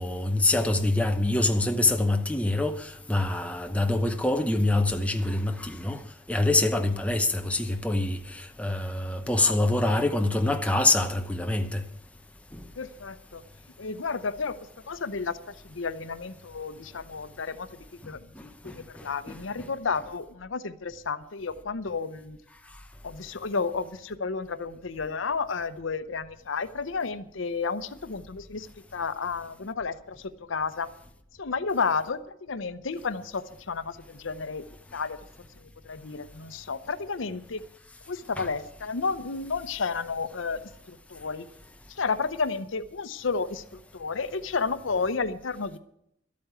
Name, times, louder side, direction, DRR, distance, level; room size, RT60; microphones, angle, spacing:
voice 1, 0.0-6.0 6.3-11.8 12.5-12.6 18.6-19.7 38.4-38.5, left 2 dB, 5° left, 0.8 m, -25 dB
voice 2, 9.4-10.0 12.8-13.4 13.8-14.5 14.9-15.4 15.6-17.7 18.0-22.4 23.0-28.7 28.9-30.9 31.4-34.6 34.9-35.2 35.6-37.6 38.1-40.6 40.9-41.5 41.9-45.8, left 4 dB, 85° left, 0.7 m, -32 dB
12.5 x 8.6 x 8.0 m
head